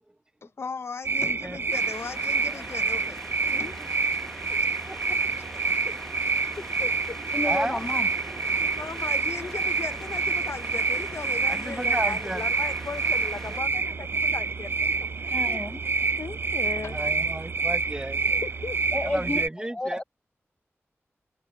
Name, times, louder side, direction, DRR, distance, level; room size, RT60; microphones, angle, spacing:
voice 1, 0.4-3.2 3.6-3.8 4.5-4.7 5.5-6.0 6.6-7.2 8.7-15.9 16.2-17.0 18.3-18.8, left 5 dB, 65° left, 0.8 m, -38 dB
sound 1, 1.0-19.5, right 4 dB, 50° right, 0.5 m, -27 dB
sound 2, 1.7-13.6, left 1 dB, 5° left, 1.0 m, -43 dB
voice 2, 4.9-5.3 7.4-7.9 8.3-8.7 11.5-12.4 15.5-15.6 16.9-18.2 19.0-20.0, right 1 dB, 15° right, 0.8 m, -33 dB
voice 3, 7.3-8.1 15.3-15.8 18.9-19.4 19.7-20.0, left 2 dB, 20° left, 0.5 m, -31 dB
wide cardioid pair, 85°, 5 cm